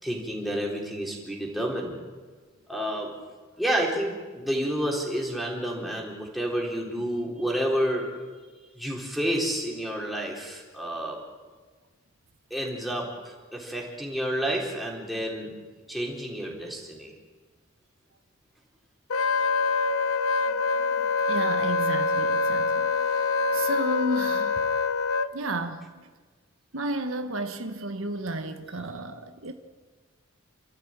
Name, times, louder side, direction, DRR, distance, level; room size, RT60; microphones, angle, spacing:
voice 1, 0.0-2.0 2.7-3.1 3.6-8.1 8.8-11.2 12.5-15.5 15.9-17.1, equal, ahead, 3.9 m, -30 dB
Wind instrument woodwind instrument, 19.1-25.3, left 4 dB, 90° left, 0.9 m, -25 dB
voice 2, 20.5-24.6 25.3-26.1 26.7-29.5, right 1 dB, 75° right, 1.3 m, -33 dB
29.0 x 14.0 x 8.8 m
head